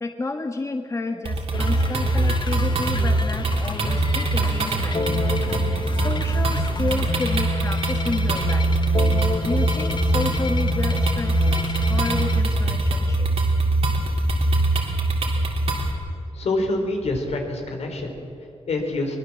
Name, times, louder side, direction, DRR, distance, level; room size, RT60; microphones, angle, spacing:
voice 1, 0.0-5.0 5.9-8.7 9.4-13.3, left 3 dB, 30° left, 5 dB, 1.4 m, -31 dB
sound 1, 1.3-15.9, right 2 dB, 65° right, 3.3 m, -22 dB
sound 2, 1.5-12.4, left 4 dB, 45° left, 1.2 m, -30 dB
voice 2, 16.3-19.2, left 2 dB, 80° left, 3 dB, 4.1 m, -27 dB
22.5 x 21.5 x 7.5 m, 2.7 s
wide cardioid pair, 120°, 11 cm